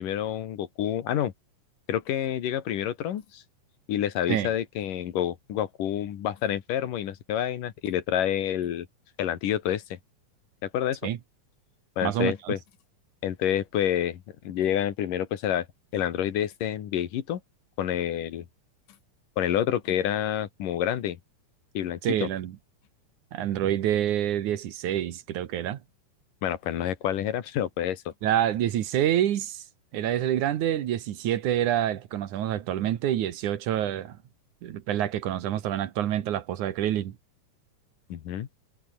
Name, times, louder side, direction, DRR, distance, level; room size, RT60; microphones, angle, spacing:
voice 1, 0.0-1.3 1.9-3.4 3.9-8.9 9.2-10.0 10.6-11.1 12.0-12.6 13.2-15.7 15.9-17.4 17.8-18.5 19.4-21.2 21.7-22.3 26.4-28.1 38.1-38.5, left 10 dB, 80° left, 3.4 m, -28 dB
voice 2, 12.0-12.5 22.0-22.6 23.3-25.8 28.2-29.6 29.9-34.2 34.6-37.1, right 11 dB, 70° right, 2.7 m, -27 dB
omnidirectional pair, 3.8 m